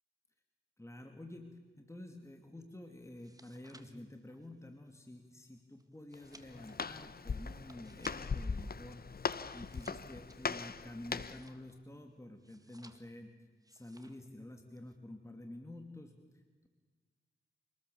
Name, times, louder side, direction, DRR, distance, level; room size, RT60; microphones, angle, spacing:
voice 1, 0.8-1.5 1.8-13.3 13.7-16.7, left 1 dB, 15° left, 4 dB, 2.7 m, -50 dB
sound 1, 3.1-8.5 8.9-11.9 12.4-13.3 13.6-14.3 14.6-15.0, right 2 dB, 15° right, 1.8 m, -61 dB
Walk footsteps, 6.1-11.5, left 5 dB, 45° left, 0.9 m, -40 dB
27.0 x 20.0 x 7.1 m, 1.4 s
cardioid pair, 65°, 21 cm